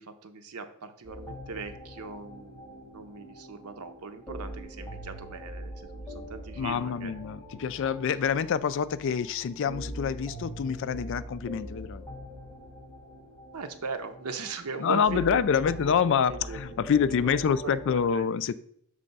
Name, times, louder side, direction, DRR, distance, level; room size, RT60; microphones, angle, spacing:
voice 1, 0.0-7.1 13.5-18.3, right 4 dB, 90° right, 8 dB, 0.7 m, -39 dB
sound 1, 1.0-18.0, equal, 10° left, 1.3 m, -43 dB
voice 2, 6.6-12.0 14.8-18.5, left 7 dB, 60° left, 15 dB, 0.3 m, -27 dB
6.4 x 3.3 x 5.3 m, 0.67 s
head